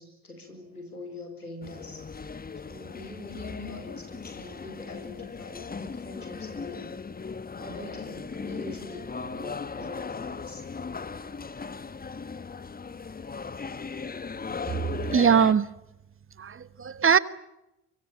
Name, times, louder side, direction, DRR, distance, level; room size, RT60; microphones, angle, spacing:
voice 1, 0.0-2.0 2.6-6.9 7.5-10.6, left 2 dB, 90° left, 4 dB, 4.5 m, -43 dB
sound 1, 1.6-15.5, left 5 dB, 20° left, 1.3 m, -37 dB
voice 2, 15.1-15.7 16.4-17.2, right 7 dB, 30° right, 16 dB, 1.3 m, -21 dB
24.0 x 24.0 x 9.2 m, 0.90 s
figure-of-eight pair, 50°, 44 cm